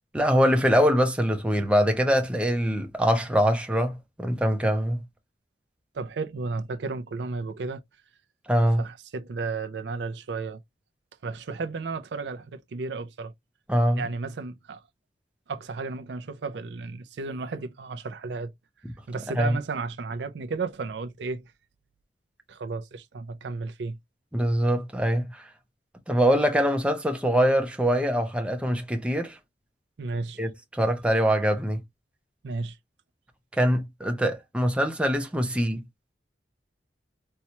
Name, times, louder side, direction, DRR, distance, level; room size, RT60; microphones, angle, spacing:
voice 1, 0.1-5.0 8.5-8.8 13.7-14.0 19.4-19.6 24.3-25.4 26.1-29.4 30.4-31.8 33.5-35.8, equal, 5° right, 0.7 m, -23 dB
voice 2, 5.9-7.8 8.8-10.6 11.2-13.3 13.9-14.8 15.5-18.5 19.1-21.5 22.5-24.0 30.0-30.4 32.4-32.8, right 4 dB, 75° right, 0.4 m, -33 dB
4.2 x 2.2 x 2.9 m
head